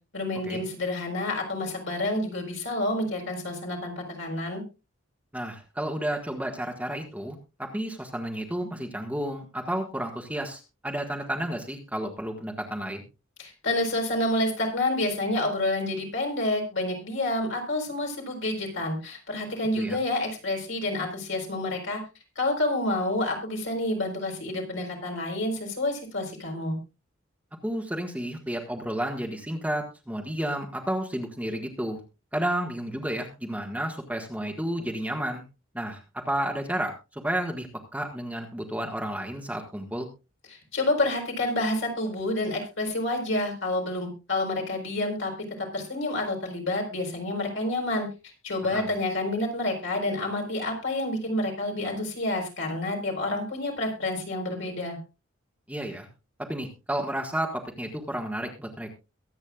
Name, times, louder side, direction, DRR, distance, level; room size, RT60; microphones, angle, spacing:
voice 1, 0.1-4.6 13.4-22.0 22.4-26.8 40.5-45.3 45.6-48.1 48.4-55.0, left 1 dB, 60° left, 1 dB, 4.3 m, -29 dB
voice 2, 5.3-13.0 19.8-20.0 27.6-32.0 32.3-35.4 35.7-40.1 48.6-48.9 55.7-56.1 56.5-58.9, right 1 dB, 5° right, 2 dB, 1.5 m, -31 dB
23.0 x 8.7 x 2.4 m, 0.29 s
head